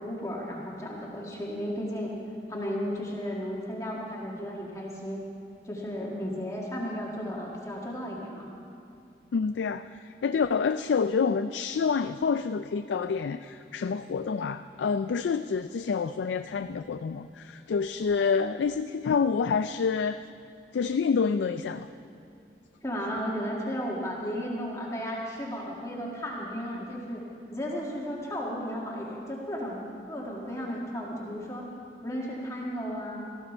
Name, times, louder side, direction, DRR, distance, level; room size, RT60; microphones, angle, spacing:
voice 1, 0.0-2.1 2.5-5.2 5.6-8.5 22.8-27.2 27.5-31.6 32.0-33.2, equal, 15° left, -3 dB, 1.7 m, -34 dB
voice 2, 9.3-20.2 20.7-21.9, left 5 dB, 80° left, 10 dB, 0.4 m, -28 dB
18.5 x 14.0 x 4.5 m, 2.5 s
head